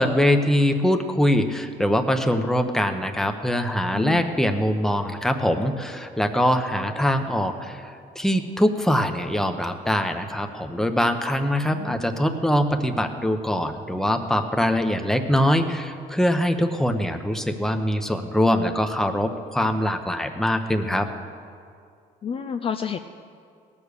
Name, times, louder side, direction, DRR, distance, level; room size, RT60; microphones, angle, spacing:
voice 1, 0.0-21.1, equal, 5° left, 6 dB, 0.9 m, -23 dB
voice 2, 3.9-4.2 11.7-12.0 22.2-23.0, left 7 dB, 35° left, 7 dB, 0.5 m, -30 dB
17.5 x 7.1 x 6.6 m, 2.3 s
cardioid pair, 110°, 17 cm